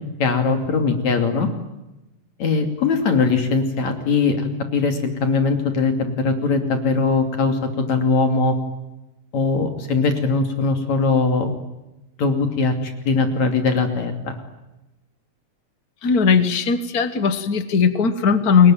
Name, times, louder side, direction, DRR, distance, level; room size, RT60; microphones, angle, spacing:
voice 1, 0.2-1.5 2.4-8.5 9.3-11.5 12.2-14.4, left 4 dB, 55° left, 6 dB, 3.9 m, -20 dB
voice 2, 16.0-18.7, left 6 dB, 85° left, 11 dB, 0.8 m, -18 dB
29.5 x 21.5 x 9.2 m, 0.99 s
omnidirectional pair, 4.0 m